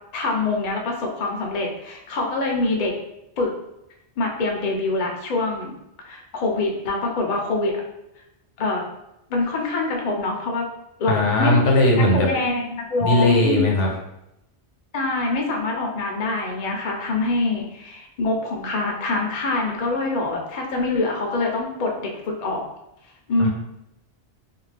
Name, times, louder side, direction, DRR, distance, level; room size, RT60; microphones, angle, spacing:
voice 1, 0.1-2.9 3.4-3.5 4.2-5.7 6.0-7.8 8.6-8.8 9.3-10.7 11.0-11.5 11.9-13.7 14.9-22.6 23.3-23.5, left 2 dB, 50° left, 0 dB, 0.5 m, -25 dB
voice 2, 11.1-12.3 13.0-13.9 23.4-23.5, left 1 dB, 85° left, 0 dB, 1.0 m, -18 dB
2.6 x 2.3 x 3.3 m, 0.85 s
omnidirectional pair, 1.2 m